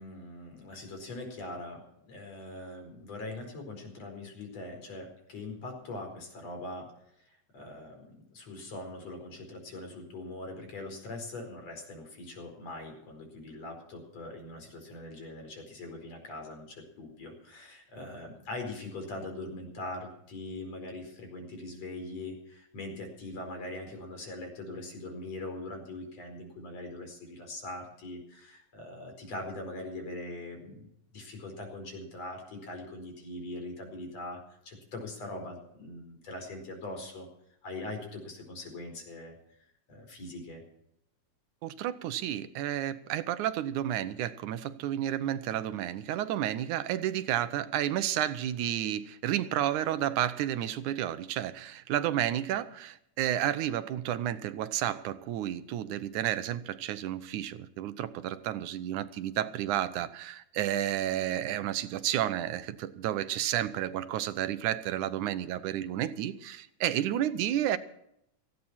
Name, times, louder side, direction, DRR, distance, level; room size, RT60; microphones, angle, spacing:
voice 1, 0.0-6.9 7.5-8.0 8.3-37.3 37.6-39.3 39.9-40.6, left 2 dB, 60° left, 4 dB, 5.8 m, -42 dB
voice 2, 41.6-67.8, right 12 dB, 90° right, 13 dB, 2.4 m, -31 dB
18.5 x 15.5 x 4.3 m, 0.76 s
omnidirectional pair, 3.4 m